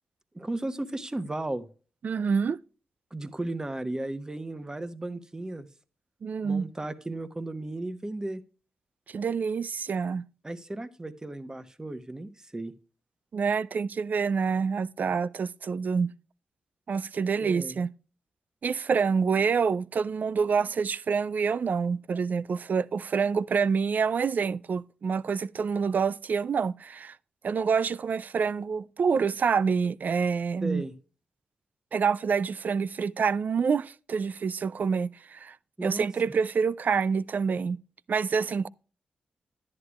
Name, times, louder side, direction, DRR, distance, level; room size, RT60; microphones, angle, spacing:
voice 1, 0.3-1.7 3.1-5.7 6.4-8.4 10.4-12.7 17.4-17.8 30.6-30.9 35.8-36.1, right 2 dB, 20° right, 1.0 m, -35 dB
voice 2, 2.0-2.6 6.2-6.7 9.1-10.2 13.3-16.1 16.9-17.9 18.6-27.2 27.4-30.8 31.9-35.6 35.8-37.8 38.1-38.7, right 5 dB, 60° right, 0.4 m, -27 dB
11.0 x 9.7 x 2.4 m
cardioid pair, 55°, 3 cm